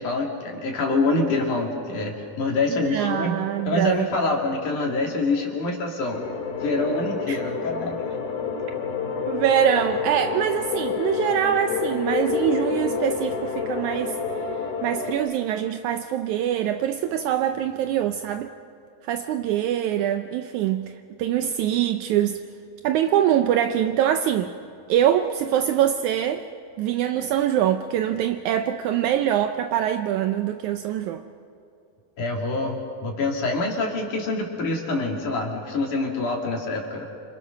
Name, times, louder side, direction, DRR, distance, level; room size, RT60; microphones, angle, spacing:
voice 1, 0.0-6.2 6.6-8.0 32.2-37.0, left 3 dB, 60° left, 3.9 m, -26 dB
voice 2, 2.7-4.1 7.3-7.4 9.3-14.2 14.8-18.5 19.1-20.9 21.2-22.4 22.8-24.5 24.9-26.5 26.8-31.2, right 10 dB, 80° right, 1.7 m, -24 dB
sound 1, 6.1-15.1, left 5 dB, 85° left, 5.0 m, -28 dB
28.0 x 26.5 x 6.5 m
omnidirectional pair, 4.2 m